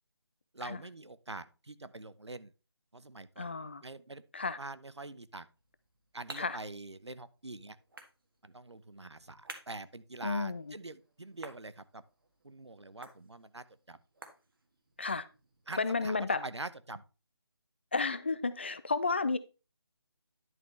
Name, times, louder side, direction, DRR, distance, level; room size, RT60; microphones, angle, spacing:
voice 1, 0.5-2.5 2.9-3.5 3.8-4.2 4.6-5.5 6.1-7.8 8.4-12.0 12.4-14.0 15.7-17.0, right 2 dB, 80° right, 0.8 m, -45 dB
voice 2, 3.4-3.8 4.3-4.6 6.4-6.6 10.2-10.6 15.0-15.3 15.8-16.4 17.9-19.4, left 4 dB, 25° left, 0.4 m, -32 dB
sound 1, 5.6-16.4, right 2 dB, 55° right, 1.6 m, -55 dB
10.5 x 5.9 x 3.2 m
figure-of-eight pair, 155°, 14 cm